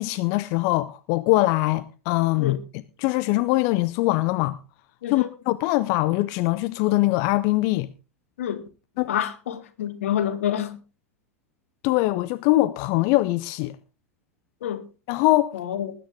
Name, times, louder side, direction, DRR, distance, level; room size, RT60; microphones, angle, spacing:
voice 1, 0.0-4.6 5.1-7.9 9.0-9.1 11.8-13.7 15.1-15.5, left 18 dB, 45° left, 0.6 m, -22 dB
voice 2, 9.1-10.8 14.6-14.8 15.5-15.9, left 10 dB, 60° left, 1.9 m, -27 dB
20.5 x 9.2 x 3.6 m
figure-of-eight pair, 90°, 8 cm